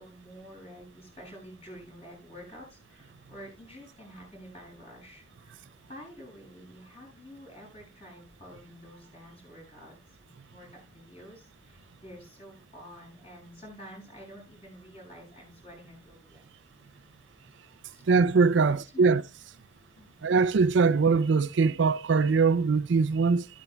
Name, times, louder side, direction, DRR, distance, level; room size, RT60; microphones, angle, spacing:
voice 1, 0.0-5.6 5.9-16.6 17.9-18.0 18.5-19.2 20.0-20.3, equal, 30° left, 6.9 m, -49 dB
voice 2, 18.1-19.2 20.2-23.5, right 4 dB, 65° right, 0.4 m, -22 dB
12.5 x 12.0 x 2.2 m
head